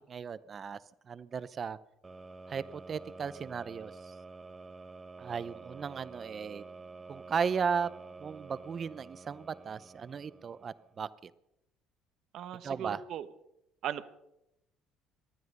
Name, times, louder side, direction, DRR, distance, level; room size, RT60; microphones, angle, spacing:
voice 1, 0.1-0.8 1.1-1.8 2.5-3.9 5.2-6.6 7.1-7.9 8.2-11.3 12.6-13.0, right 6 dB, 35° right, 16 dB, 0.7 m, -35 dB
sound 1, 2.0-11.0, right 3 dB, 20° right, 1.0 m, -49 dB
voice 2, 12.3-13.3 13.8-14.1, right 10 dB, 60° right, 13 dB, 1.0 m, -38 dB
19.0 x 12.5 x 5.4 m, 0.84 s
cardioid pair, 120°, 0 cm